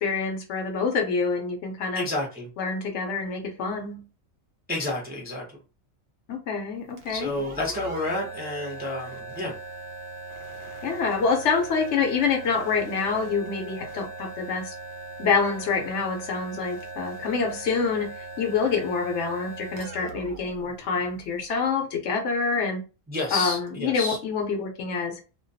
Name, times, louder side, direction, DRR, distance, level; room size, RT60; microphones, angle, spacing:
voice 1, 0.0-2.0 2.6-4.0 6.3-7.3 10.8-14.7 15.2-22.8 23.3-25.2, left 5 dB, 70° left, 0.9 m, -26 dB
voice 2, 2.0-2.5 4.7-5.4 7.1-9.6 23.1-24.2, left 2 dB, 15° right, 0.4 m, -30 dB
sound 1, 6.9-21.5, right 3 dB, 55° right, 0.8 m, -40 dB
2.3 x 2.2 x 2.6 m
omnidirectional pair, 1.4 m